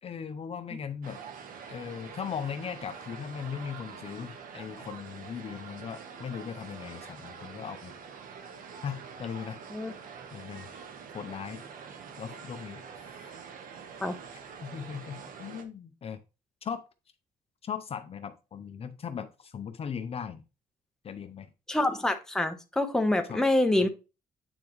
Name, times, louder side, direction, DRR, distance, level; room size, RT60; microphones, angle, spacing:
voice 1, 0.0-1.2 1.7-7.9 8.8-9.6 10.3-10.7 11.1-11.6 12.2-13.3 14.6-16.2 16.6-16.8 17.6-20.4 21.0-21.5 23.3-23.4 23.8-23.9, left 7 dB, 40° left, 0.7 m, -38 dB
sound 1, 1.0-15.6, right 6 dB, 65° right, 1.2 m, -45 dB
voice 2, 21.7-23.9, left 1 dB, 5° left, 1.0 m, -26 dB
9.1 x 4.6 x 3.1 m
cardioid pair, 120°, 15 cm